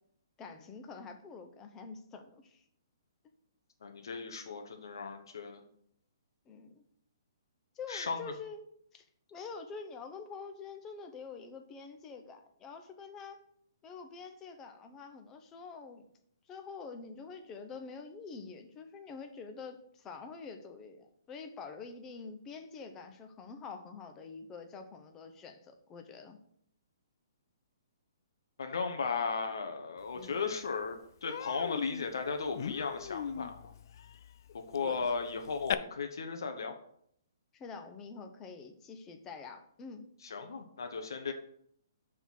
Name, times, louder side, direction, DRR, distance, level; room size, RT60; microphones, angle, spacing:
voice 1, 0.4-2.6 6.5-6.8 7.7-9.0 9.3-13.4 13.8-16.1 16.5-26.4 30.1-30.4 34.8-35.1 37.5-40.1, left 5 dB, 20° left, 6 dB, 0.9 m, -46 dB
voice 2, 3.8-5.6 7.9-8.2 28.6-33.7 34.5-36.7 40.2-41.3, left 5 dB, 80° left, 5 dB, 0.9 m, -36 dB
Human voice, 30.2-30.3 30.7-30.9 31.2-35.7, left 8 dB, 55° left, 0.4 m, -39 dB
7.0 x 3.7 x 6.1 m, 0.67 s
hypercardioid pair, 150°, 2 cm